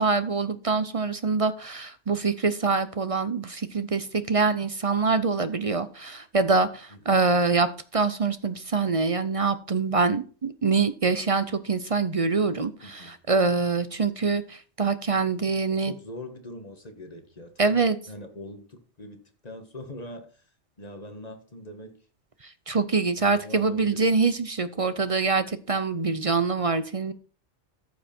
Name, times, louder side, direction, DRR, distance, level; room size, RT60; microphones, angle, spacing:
voice 1, 0.0-15.9 17.6-18.0 22.4-27.1, right 4 dB, 35° right, 0.6 m, -25 dB
voice 2, 6.9-7.2 12.8-13.2 15.7-20.4 20.8-22.0 23.2-24.2 24.7-25.0, left 1 dB, 35° left, 1.7 m, -42 dB
14.0 x 5.7 x 4.4 m
omnidirectional pair, 1.2 m